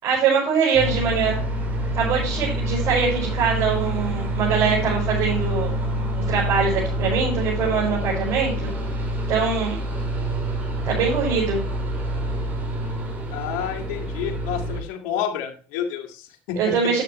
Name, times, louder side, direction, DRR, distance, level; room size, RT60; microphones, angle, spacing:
voice 1, 0.0-1.4 2.0-5.7 6.3-8.7 9.3-9.8 10.8-11.6 16.6-17.0, right 6 dB, 60° right, -5 dB, 5.4 m, -23 dB
sound 1, 0.7-14.8, equal, 30° right, 4.9 m, -27 dB
voice 2, 13.3-17.0, left 9 dB, 75° left, 4 dB, 2.0 m, -29 dB
9.6 x 9.0 x 3.1 m, 0.40 s
supercardioid pair, 75°, 6 cm